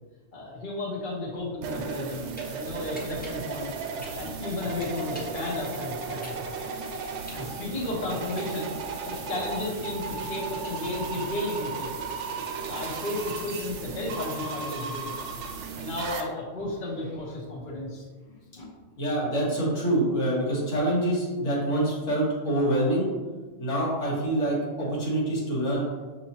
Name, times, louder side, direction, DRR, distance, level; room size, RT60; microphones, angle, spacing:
voice 1, 0.3-3.7 4.2-6.4 7.3-8.7 9.0-12.0 12.6-15.1 15.8-18.7, left 2 dB, 45° left, -5 dB, 1.1 m, -33 dB
sound 1, 1.6-16.2, right 4 dB, 70° right, 0.9 m, -35 dB
sound 2, 2.4-2.5 2.9-5.4 5.8-8.9, equal, 10° left, 0.7 m, -46 dB
voice 2, 19.0-23.1 23.6-25.8, right 1 dB, 70° left, -5 dB, 1.6 m, -26 dB
6.4 x 3.0 x 2.8 m, 1.3 s
omnidirectional pair, 1.3 m